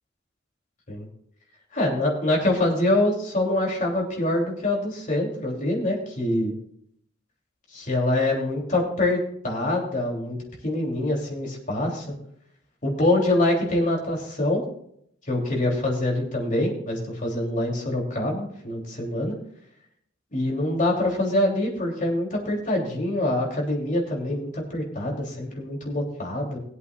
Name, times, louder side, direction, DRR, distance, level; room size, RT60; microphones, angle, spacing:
voice 1, 1.7-6.5 7.7-10.4 10.6-12.1 12.8-14.6 15.3-19.3 20.3-26.6, left 1 dB, 40° left, -2 dB, 3.2 m, -25 dB
21.5 x 8.2 x 2.5 m, 0.69 s
head